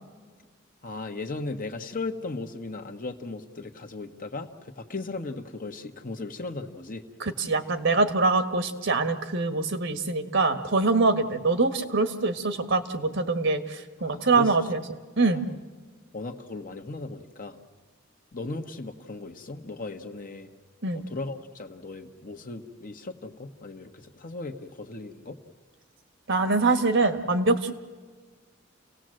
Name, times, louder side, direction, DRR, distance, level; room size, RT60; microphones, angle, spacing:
voice 1, 0.8-7.0 14.0-14.7 15.2-15.4 16.1-17.6 18.3-20.5 21.1-25.4, left 3 dB, 45° left, 5 dB, 1.4 m, -37 dB
voice 2, 7.2-14.8 15.2-15.4 20.8-21.0 26.3-27.7, right 3 dB, 65° right, 9 dB, 1.6 m, -24 dB
29.5 x 18.0 x 7.8 m, 1.5 s
head